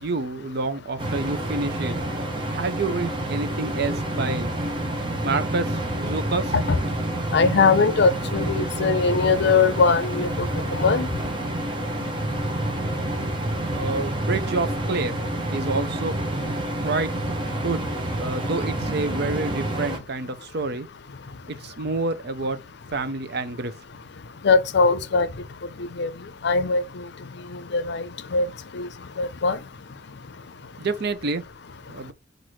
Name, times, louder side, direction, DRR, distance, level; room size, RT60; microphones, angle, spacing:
voice 1, 0.0-2.0 2.5-4.5 5.2-6.5 13.7-15.2 15.5-16.1 16.8-17.1 17.6-17.9 18.2-20.9 21.5-22.6 22.9-23.7 30.8-31.4 31.9-32.1, right 3 dB, 60° right, 0.6 m, -28 dB
sound 1, 1.0-20.0, right 1 dB, 25° right, 0.8 m, -28 dB
voice 2, 7.3-11.1 24.4-25.3 26.0-26.1 26.4-26.8 27.7-28.0 28.3-28.5 28.7-28.9 29.2-29.6, left 4 dB, 60° left, 0.5 m, -20 dB
5.9 x 2.6 x 3.0 m
head